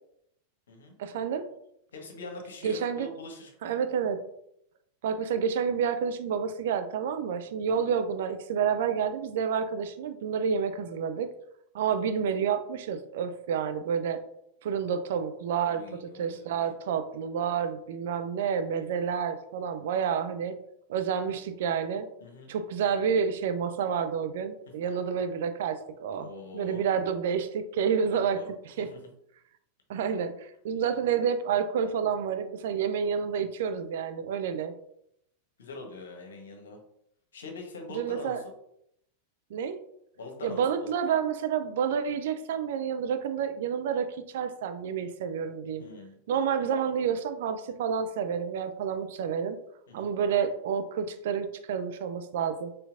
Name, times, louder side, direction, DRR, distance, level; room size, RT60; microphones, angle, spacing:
voice 1, 1.0-1.5 2.6-3.1 3.6-4.2 5.0-11.3 11.7-14.2 14.6-20.6 20.9-22.1 22.5-28.9 29.9-34.7 37.9-38.4 39.5-39.8 40.4-45.8 46.3-49.6 49.9-52.7, right 7 dB, 55° right, 9 dB, 0.4 m, -29 dB
voice 2, 1.9-3.7 7.7-7.9 15.7-16.5 22.2-22.5 26.2-26.8 28.0-28.5 28.8-29.0 35.6-36.8 37.3-38.4 40.2-40.9 45.8-46.2 49.9-50.1, left 3 dB, 65° left, 2 dB, 1.0 m, -43 dB
4.3 x 3.8 x 2.5 m, 0.75 s
figure-of-eight pair, 90°, 0 cm